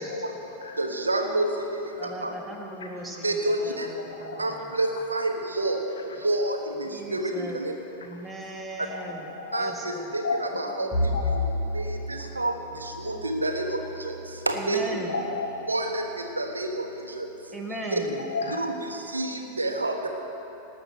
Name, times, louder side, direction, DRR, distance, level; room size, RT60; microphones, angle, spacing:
voice 1, 0.0-0.9 2.8-2.9 3.8-4.5 5.0-5.1 8.0-8.2 8.9-9.7 10.2-11.4 12.2-12.3 14.9-15.7 18.0-18.6, left 3 dB, 70° left, 3 dB, 1.4 m, -34 dB
voice 2, 0.8-1.5 2.0-2.3 3.2-3.9 4.4-7.2 7.5-7.7 9.5-10.9 11.7-12.5 13.0-13.7 14.0-14.1 14.5-14.8 15.7-16.1 16.4-16.7 17.2-17.3 17.9-18.0 18.6-20.1, right 2 dB, 80° right, 4 dB, 1.2 m, -28 dB
voice 3, 2.0-4.8 6.9-7.6 8.0-9.3 9.6-10.1 14.5-15.1 17.5-18.2, right 1 dB, 10° right, 0 dB, 1.9 m, -38 dB
Bowed string instrument, 10.9-15.3, left 1 dB, 20° left, 3.2 m, -32 dB
18.5 x 6.5 x 7.8 m, 3.0 s
figure-of-eight pair, 90°, 0 cm